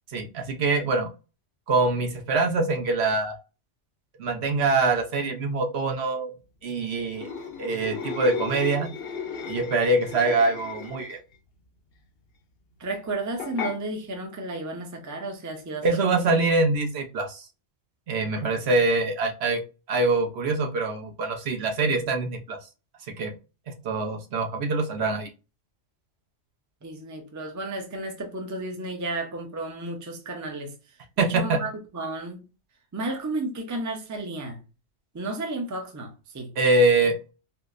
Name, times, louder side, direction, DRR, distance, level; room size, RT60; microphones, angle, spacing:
voice 1, 0.1-1.1 1.7-3.4 4.2-6.3 6.6-7.3 7.6-8.9 9.5-11.2 15.8-17.5 18.1-19.6 19.9-22.6 23.2-23.3 23.7-25.3 31.2-31.6 36.6-37.3, right 3 dB, 65° right, 0.9 m, -24 dB
sound 1, 7.1-11.4 13.4-13.8, left 6 dB, 60° left, 0.7 m, -35 dB
voice 2, 12.8-16.2 18.3-18.4 26.8-30.7 31.2-32.4 32.9-34.6 35.1-36.5, right 2 dB, 20° right, 0.5 m, -33 dB
4.3 x 2.0 x 2.4 m
omnidirectional pair, 1.2 m